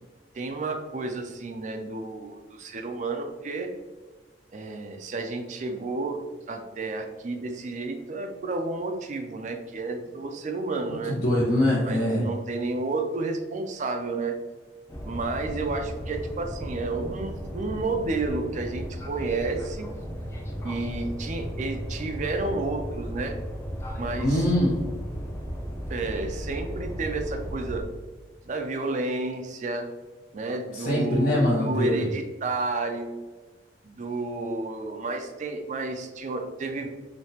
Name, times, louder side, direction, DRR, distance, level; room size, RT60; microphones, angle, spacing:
voice 1, 0.3-3.7 4.5-11.2 11.8-14.4 15.1-19.9 20.6-23.4 24.0-24.4 25.9-27.8 28.4-29.9 30.3-33.2 33.8-36.9, right 3 dB, 45° right, 5 dB, 0.4 m, -31 dB
voice 2, 11.1-12.2 24.2-24.8 30.7-32.1, left 1 dB, 45° left, -11 dB, 1.3 m, -23 dB
sound 1, 14.9-27.8, equal, 15° left, 0.8 m, -35 dB
5.1 x 2.8 x 2.8 m, 1.3 s
head